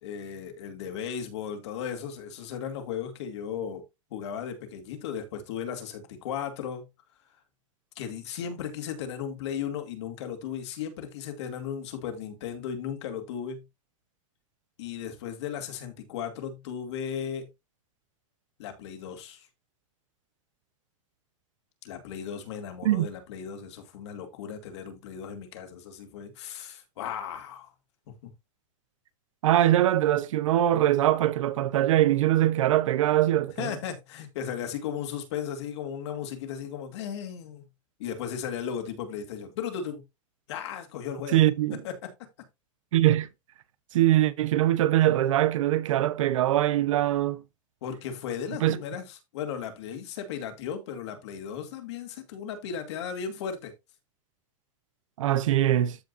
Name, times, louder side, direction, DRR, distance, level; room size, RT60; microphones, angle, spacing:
voice 1, 0.0-3.8 4.1-6.9 8.0-13.6 14.8-17.5 18.6-19.5 21.8-27.7 28.1-28.3 33.6-37.7 38.0-40.0 40.5-41.4 41.8-42.1 47.8-53.7, left 8 dB, 55° left, 2.4 m, -36 dB
voice 2, 29.4-33.7 41.3-41.8 42.9-43.3 43.9-47.4 48.6-48.8 55.2-56.0, right 13 dB, 70° right, 0.8 m, -22 dB
14.0 x 5.1 x 2.6 m
supercardioid pair, 175°, 17 cm